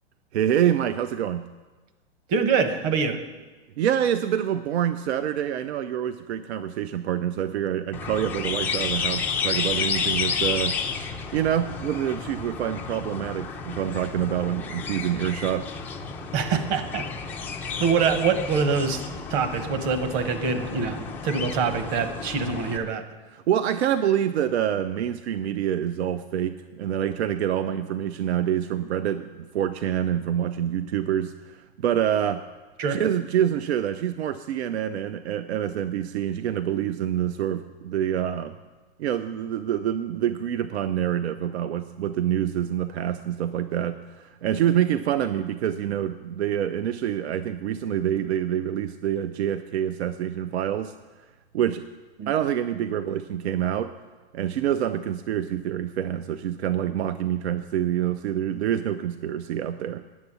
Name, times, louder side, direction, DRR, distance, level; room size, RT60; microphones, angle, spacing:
voice 1, 0.3-1.5 3.8-10.8 11.3-15.7 23.3-32.4 32.9-38.6 39.0-50.9 51.5-51.8 52.3-53.9 54.3-60.0, right 10 dB, 80° right, 12 dB, 0.6 m, -26 dB
voice 2, 2.3-3.2 16.3-17.1 17.8-19.0 19.3-23.0 32.8-33.0 52.2-52.3, right 5 dB, 40° right, 8 dB, 1.1 m, -25 dB
sound 1, 7.9-22.8, left 6 dB, 5° left, 0.3 m, -31 dB
9.5 x 7.0 x 8.2 m, 1.3 s
hypercardioid pair, 140°, 32 cm